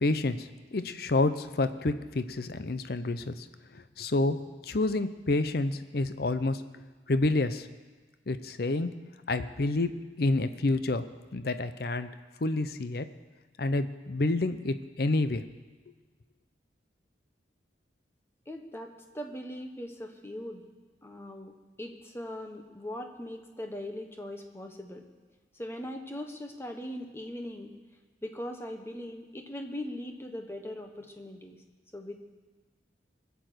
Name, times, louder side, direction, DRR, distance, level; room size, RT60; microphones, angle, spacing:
voice 1, 0.0-3.5 4.0-6.6 7.1-7.7 8.3-9.0 9.3-11.0 11.3-12.1 12.4-13.1 13.6-15.4, left 2 dB, 55° left, 11 dB, 0.6 m, -28 dB
voice 2, 18.5-20.6 21.0-25.1 25.5-27.8 28.2-31.6 31.9-32.2, left 1 dB, 15° left, 4 dB, 1.1 m, -40 dB
20.5 x 7.0 x 7.9 m, 1.3 s
head